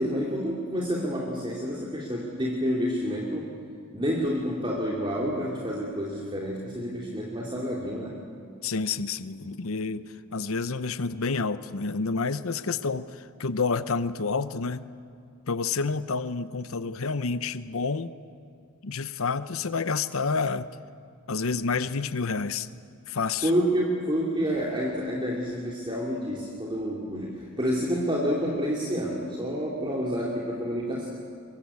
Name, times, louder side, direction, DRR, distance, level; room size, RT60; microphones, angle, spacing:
voice 1, 0.0-3.5 3.9-8.1 23.4-31.1, equal, 20° right, -3 dB, 2.6 m, -29 dB
voice 2, 8.6-14.9 15.5-18.1 18.8-20.7 21.3-22.7 23.1-23.5, left 4 dB, 70° left, 14 dB, 0.8 m, -29 dB
23.5 x 22.0 x 8.5 m, 2.4 s
head